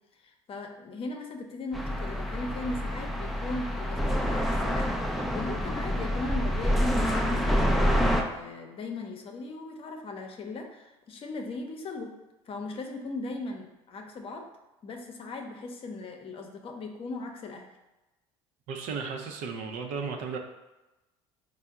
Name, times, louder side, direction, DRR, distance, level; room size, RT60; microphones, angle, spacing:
voice 1, 0.2-12.1 12.5-14.4 14.8-17.7, left 2 dB, 45° left, 3 dB, 0.7 m, -38 dB
sound 1, 1.7-8.2, equal, ahead, 0.4 m, -27 dB
voice 2, 18.7-20.4, right 5 dB, 70° right, 3 dB, 0.5 m, -34 dB
4.3 x 2.0 x 3.5 m, 1.0 s
supercardioid pair, 75°, 13 cm